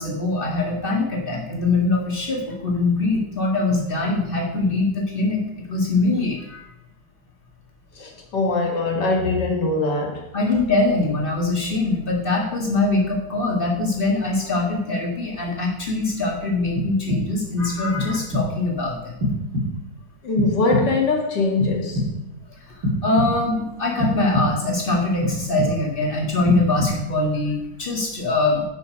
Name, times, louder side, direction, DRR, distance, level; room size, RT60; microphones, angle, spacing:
voice 1, 0.0-5.4 5.7-6.6 10.3-19.1 23.0-28.6, left 2 dB, 30° left, 0 dB, 2.2 m, -23 dB
voice 2, 8.0-10.3 20.2-22.0, left 3 dB, 65° left, 1 dB, 2.5 m, -22 dB
sound 1, 16.8-17.5 18.0-18.7 19.2-20.0 20.4-21.2 21.6-22.4 22.8-23.6 24.0-24.8 25.2-26.0 26.4-27.3, left 1 dB, 85° right, 2.9 m, -26 dB
10.5 x 5.7 x 5.2 m, 0.86 s
omnidirectional pair, 2.0 m